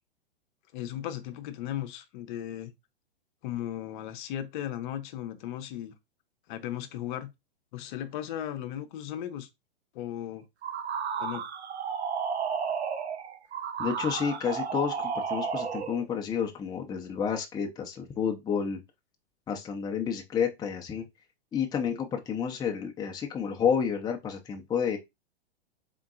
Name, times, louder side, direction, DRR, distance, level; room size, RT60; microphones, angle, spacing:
voice 1, 0.7-2.7 3.4-5.9 6.5-7.3 7.7-9.5 9.9-10.4 11.2-11.4, left 11 dB, 50° left, 0.8 m, -36 dB
sound 1, 10.6-16.0, right 6 dB, 80° right, 0.8 m, -32 dB
voice 2, 13.8-18.8 19.5-21.0 21.5-25.0, left 7 dB, 10° left, 0.6 m, -30 dB
3.7 x 3.6 x 2.4 m
hypercardioid pair, 115°, 32 cm